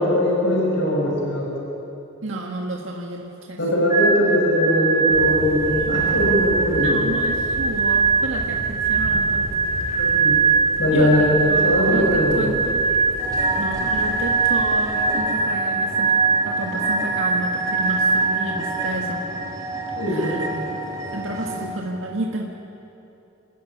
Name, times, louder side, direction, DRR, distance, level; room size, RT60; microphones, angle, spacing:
voice 1, 0.0-1.5 3.6-7.1 10.0-10.4 10.8-12.4 20.0-20.6 21.5-21.6, left 1 dB, 70° left, -3 dB, 6.0 m, -21 dB
voice 2, 2.2-3.9 6.8-9.5 10.9-12.8 13.5-16.1 16.4-19.3 20.1-20.5 21.1-22.6, right 2 dB, 75° right, 0 dB, 1.7 m, -31 dB
sound 1, 3.9-19.5, right 4 dB, 35° left, 2.1 m, -22 dB
Thunder, 5.1-15.1, equal, 85° left, 2.7 m, -35 dB
sound 2, 13.2-21.7, right 2 dB, 20° right, 3.0 m, -31 dB
26.5 x 14.0 x 9.7 m, 2.8 s
head